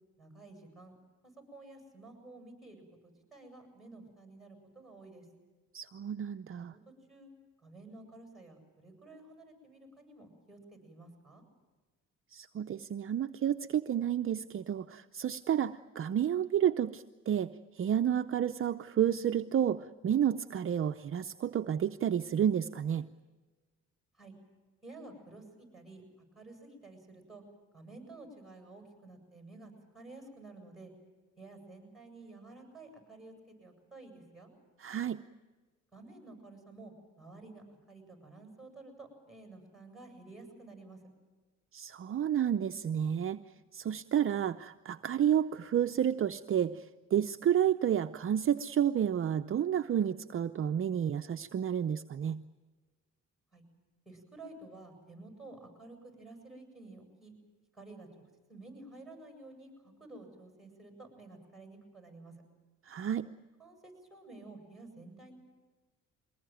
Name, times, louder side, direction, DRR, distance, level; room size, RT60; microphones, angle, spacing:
voice 1, 0.2-0.9 1.2-5.2 6.6-7.3 7.6-11.4 24.1-24.3 24.8-26.0 26.3-27.4 27.7-30.9 31.4-33.3 33.6-34.5 35.9-41.0 53.5-53.6 54.1-57.3 57.7-58.1 58.5-62.3 63.6-65.4, right 2 dB, ahead, 3 dB, 7.8 m, -52 dB
voice 2, 5.7-6.7 12.3-17.5 17.7-23.1 34.8-35.2 41.7-43.4 43.7-52.4 62.9-63.3, right 9 dB, 45° right, 8 dB, 0.7 m, -30 dB
23.5 x 19.5 x 9.2 m, 1.3 s
cardioid pair, 90°, 30 cm